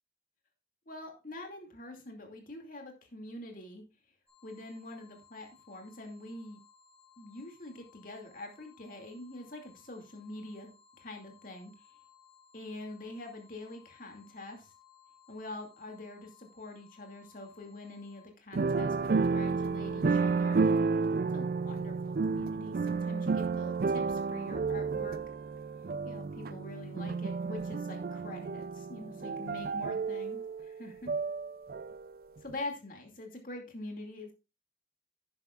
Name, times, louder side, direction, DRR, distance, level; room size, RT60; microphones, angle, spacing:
voice 1, 0.9-3.8 4.4-6.6 7.2-11.7 12.5-14.7 15.3-20.6 21.1-25.2 26.0-31.1 32.4-34.3, left 2 dB, 45° left, 2 dB, 2.5 m, -45 dB
sound 1, 4.3-18.3, left 8 dB, 5° left, 3.7 m, -62 dB
sound 2, 18.5-32.2 32.5-32.6, right 4 dB, 55° right, 0.4 m, -31 dB
11.5 x 9.6 x 2.5 m, 0.30 s
head